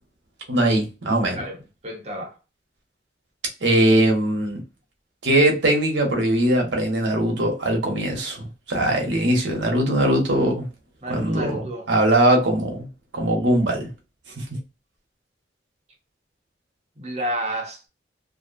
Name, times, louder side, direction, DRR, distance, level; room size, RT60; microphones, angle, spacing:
voice 1, 0.5-1.4 3.6-4.6 5.2-10.7 11.1-11.6 11.9-12.9 13.1-13.9 14.4-14.6, right 1 dB, 75° right, 1.0 m, -21 dB
voice 2, 1.4-2.4 11.0-11.9 17.0-17.8, right 1 dB, 35° right, 0.7 m, -30 dB
2.6 x 2.1 x 2.5 m
head